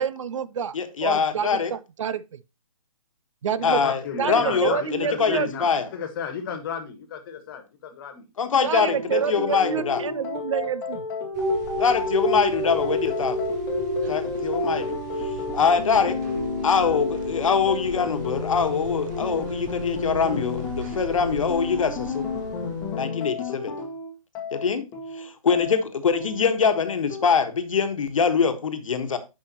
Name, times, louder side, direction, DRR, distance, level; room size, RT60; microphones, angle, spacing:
voice 1, 0.0-0.8 1.0-2.4 3.4-3.8 4.2-5.5 8.6-11.0, right 7 dB, 60° right, 0.5 m, -28 dB
voice 2, 0.7-1.7 3.6-4.0 4.3-5.9 8.4-10.0 11.8-13.4 14.1-15.0 15.5-16.2 16.6-22.3 22.9-23.7 24.5-24.9 25.1-29.2, left 6 dB, 65° left, 1.3 m, -23 dB
voice 3, 3.6-8.3, left 7 dB, 40° left, 1.6 m, -34 dB
sound 1, 8.9-27.2, left 4 dB, 15° left, 1.3 m, -32 dB
sound 2, 11.3-23.0, right 1 dB, 30° right, 1.0 m, -31 dB
9.0 x 5.4 x 2.9 m
hypercardioid pair, 140°, 18 cm